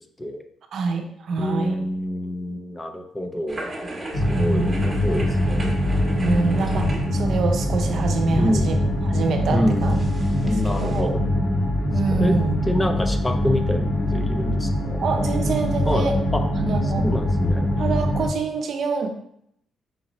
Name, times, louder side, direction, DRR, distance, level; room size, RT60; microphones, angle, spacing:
voice 1, 0.7-1.8 4.3-4.8 6.2-10.0 10.4-11.1 11.9-12.6 15.0-16.2 16.6-17.1 17.8-19.1, right 4 dB, 65° right, 5 dB, 0.6 m, -26 dB
voice 2, 1.4-5.7 8.4-8.7 9.5-9.9 10.4-11.2 12.1-12.4 12.7-15.0 15.8-16.4 16.8-17.7, left 1 dB, 15° left, 6 dB, 0.5 m, -27 dB
sound 1, 3.5-11.0, right 2 dB, 20° right, 1.0 m, -37 dB
sound 2, 4.1-18.3, left 1 dB, 70° left, 1.6 m, -23 dB
5.0 x 2.7 x 3.0 m, 0.71 s
cardioid pair, 90°, 0 cm